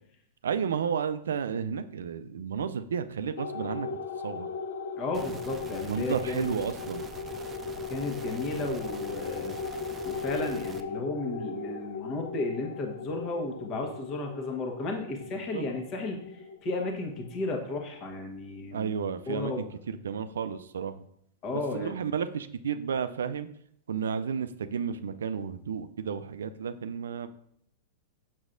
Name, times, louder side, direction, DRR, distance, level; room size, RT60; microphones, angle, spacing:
voice 1, 0.4-3.9 4.2-4.5 5.9-7.0 15.5-15.6 18.7-21.0 21.5-23.5 23.9-27.3, right 7 dB, 75° right, 11 dB, 0.3 m, -32 dB
sound 1, 3.4-18.1, left 4 dB, 65° left, 0.5 m, -38 dB
voice 2, 5.0-6.5 7.9-9.6 10.0-18.9 19.3-19.6 21.4-21.9, left 2 dB, 40° left, 3 dB, 1.2 m, -34 dB
sound 2, 5.1-10.8, right 4 dB, 20° right, 0.5 m, -45 dB
6.3 x 6.0 x 2.6 m, 0.71 s
hypercardioid pair, 105°, 0 cm